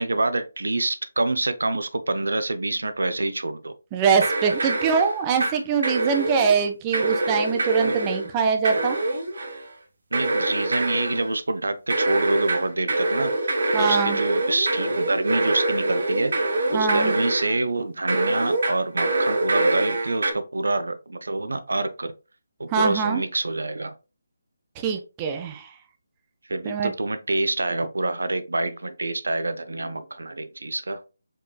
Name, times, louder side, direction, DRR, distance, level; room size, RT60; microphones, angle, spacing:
voice 1, 0.0-3.7 7.8-8.0 10.1-13.3 13.8-16.3 16.7-22.1 22.6-23.9 26.5-31.0, right 2 dB, 85° right, 0.4 m, -26 dB
voice 2, 3.9-9.0 13.7-14.2 16.7-17.1 22.7-23.2 24.8-25.7 26.6-26.9, right 6 dB, 20° right, 0.5 m, -23 dB
sound 1, 4.2-5.6 5.8-6.6 6.9-8.3 8.6-9.7 10.1-11.3 11.9-17.6 18.1-20.3, right 2 dB, 65° right, 1.1 m, -25 dB
4.5 x 3.1 x 2.2 m
figure-of-eight pair, 160°, 0 cm